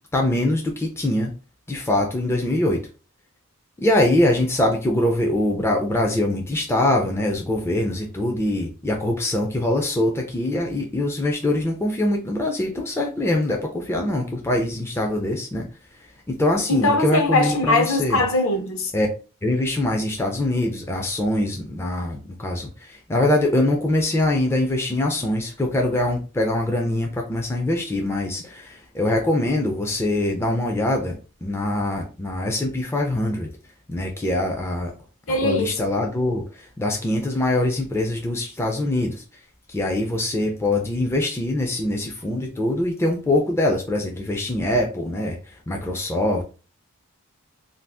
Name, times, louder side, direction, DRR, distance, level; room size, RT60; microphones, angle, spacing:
voice 1, 0.1-1.3 1.7-2.8 3.8-15.7 16.3-18.2 18.9-19.1 19.4-33.5 33.9-34.9 35.3-39.2 39.7-46.4, left 1 dB, 10° left, 0.4 m, -23 dB
voice 2, 16.7-18.9 35.3-35.8, left 2 dB, 60° left, 0.8 m, -21 dB
2.6 x 2.3 x 3.4 m
head